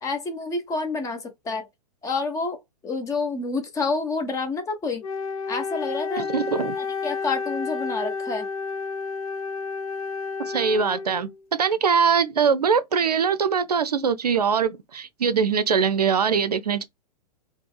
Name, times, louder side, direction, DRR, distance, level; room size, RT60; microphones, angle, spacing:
voice 1, 0.0-1.7 2.0-2.6 2.8-5.0 5.5-6.3 6.8-8.5, left 3 dB, 15° left, 0.8 m, -28 dB
Wind instrument woodwind instrument, 5.0-11.4, left 5 dB, 60° left, 0.7 m, -31 dB
voice 2, 6.3-6.7 10.4-16.8, right 6 dB, 75° right, 0.5 m, -22 dB
5.0 x 2.0 x 2.2 m
figure-of-eight pair, 105°, 21 cm